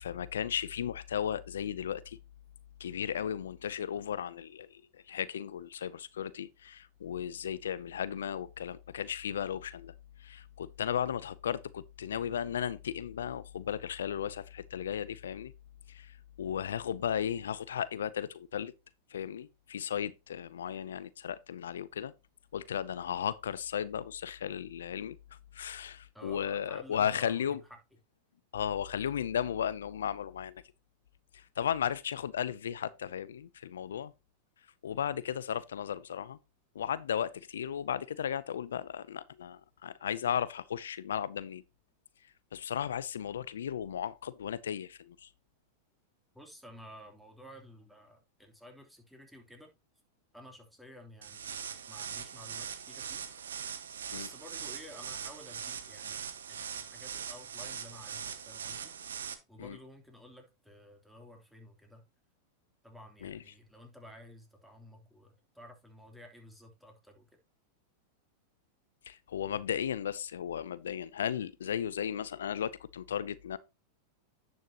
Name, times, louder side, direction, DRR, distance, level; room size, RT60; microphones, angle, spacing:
voice 1, 0.0-2.2 2.8-4.8 5.1-9.9 10.2-15.5 15.9-18.7 19.1-22.1 22.5-25.2 25.5-27.6 28.5-30.6 31.3-34.1 34.8-36.4 36.7-41.6 42.5-45.3 54.1-54.3 59.6-59.8 63.2-63.4 69.1-73.6, left 9 dB, 80° left, 0.5 m, -35 dB
voice 2, 26.1-27.8 46.3-49.7 50.3-53.2 54.1-56.2 56.5-58.9 59.5-62.0 62.8-67.3, left 1 dB, ahead, 3.1 m, -53 dB
sound 1, 51.2-59.3, right 7 dB, 85° right, 1.3 m, -41 dB
10.5 x 6.4 x 2.9 m
hypercardioid pair, 105°, 0 cm